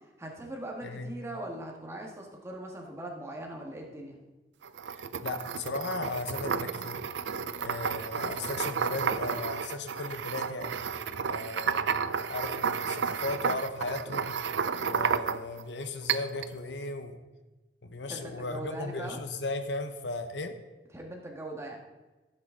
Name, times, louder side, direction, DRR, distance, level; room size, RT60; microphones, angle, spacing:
voice 1, 0.2-4.2 18.1-19.2 20.9-21.8, right 1 dB, 15° right, 0 dB, 1.7 m, -40 dB
sound 1, 4.6-15.6 16.1-16.5, right 6 dB, 75° right, 0.5 m, -32 dB
voice 2, 4.9-7.0 7.6-10.8 11.2-14.4 14.8-17.2 17.8-20.6, left 3 dB, 70° left, 7 dB, 1.0 m, -36 dB
15.0 x 7.9 x 3.9 m, 1.2 s
head